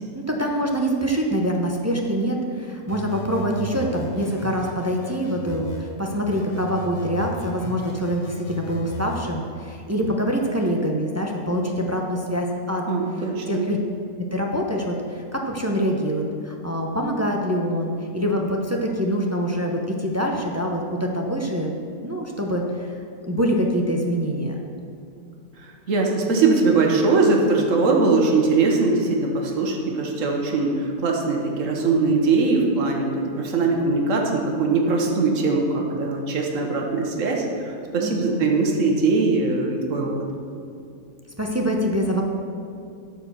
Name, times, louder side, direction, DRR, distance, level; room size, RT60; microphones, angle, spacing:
voice 1, 0.0-12.9 13.2-13.8 14.3-21.7 22.0-22.9 23.2-24.6 38.0-38.6 41.4-42.2, equal, 15° right, 0 dB, 0.6 m, -25 dB
sound 1, 2.9-5.9 6.3-9.3, right 2 dB, 65° left, 1.6 m, -37 dB
voice 2, 12.9-13.6 25.9-37.4 37.9-40.1, right 3 dB, 60° right, 0 dB, 1.6 m, -21 dB
12.0 x 4.7 x 6.8 m, 2.4 s
omnidirectional pair, 1.5 m